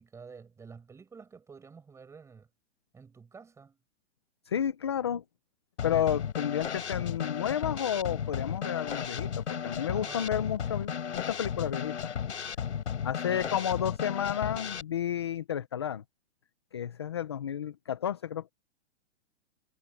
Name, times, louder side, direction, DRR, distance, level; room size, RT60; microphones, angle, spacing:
voice 1, 0.0-2.5 2.9-3.8 9.9-10.3 13.3-13.6, right 5 dB, 10° right, 7.0 m, -49 dB
voice 2, 4.5-5.2 5.8-12.1 13.0-16.0 16.7-18.5, left 9 dB, 25° left, 0.3 m, -31 dB
Drum kit / Snare drum, 5.8-14.8, left 7 dB, 90° left, 4.7 m, -34 dB
hypercardioid pair, 165°, 34 cm